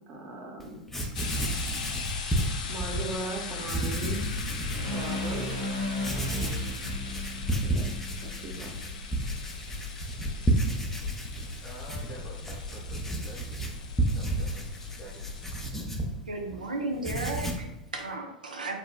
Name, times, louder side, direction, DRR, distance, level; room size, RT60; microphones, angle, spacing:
voice 1, 0.1-0.8 2.7-4.4 4.9-5.8 7.6-7.8 8.2-8.7, right 2 dB, 40° right, 0 dB, 0.7 m, -38 dB
Writing, 0.6-0.7 0.9-3.1 3.6-4.9 5.4-5.5 6.0-16.6 16.9-17.7, right 1 dB, 5° left, 0.4 m, -32 dB
sound 1, 1.1-15.7, left 5 dB, 65° left, 0.4 m, -38 dB
sound 2, 4.7-8.9, left 1 dB, 65° right, 1.1 m, -35 dB
voice 2, 11.6-13.5 14.1-14.6 15.0-15.3, equal, 35° left, -1 dB, 0.8 m, -47 dB
voice 3, 16.3-18.8, right 2 dB, 85° right, 2 dB, 0.4 m, -34 dB
3.1 x 2.1 x 2.3 m, 0.87 s
figure-of-eight pair, 90°, 4 cm